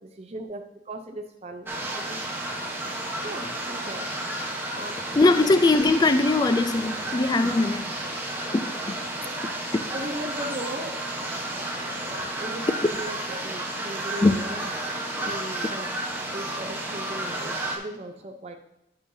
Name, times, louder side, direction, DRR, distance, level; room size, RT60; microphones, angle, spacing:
voice 1, 0.0-2.2 3.2-4.1 4.7-5.0 5.3-5.5 9.9-11.0 11.8-12.0 12.4-14.7 15.2-15.9 16.3-18.6, right 1 dB, 35° right, 0.6 m, -38 dB
sound 1, 1.7-17.8, right 1 dB, 10° right, 0.9 m, -32 dB
voice 2, 5.1-8.0 8.5-8.7 11.5-12.3 14.2-14.4, left 2 dB, 20° left, 0.3 m, -21 dB
11.5 x 5.5 x 2.7 m
head